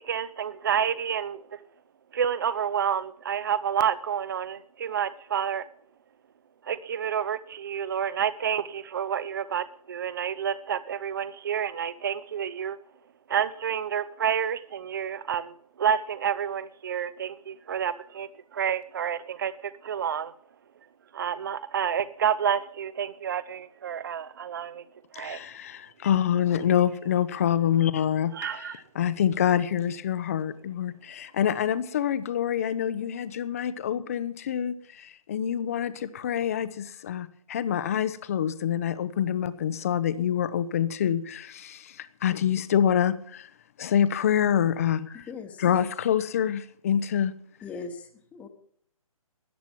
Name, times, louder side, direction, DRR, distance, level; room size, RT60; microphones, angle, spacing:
voice 1, 0.0-1.6 2.1-5.6 6.6-12.8 13.3-20.3 21.1-24.8 25.1-25.4 28.3-28.8, right 8 dB, 35° right, 0.6 m, -29 dB
voice 2, 25.1-28.6 29.0-43.5 43.8-45.1 45.6-47.3, left 9 dB, 25° left, 0.6 m, -26 dB
voice 3, 45.1-45.6 47.6-48.5, left 4 dB, 5° left, 1.1 m, -40 dB
14.0 x 9.5 x 7.2 m
figure-of-eight pair, 145°, 18 cm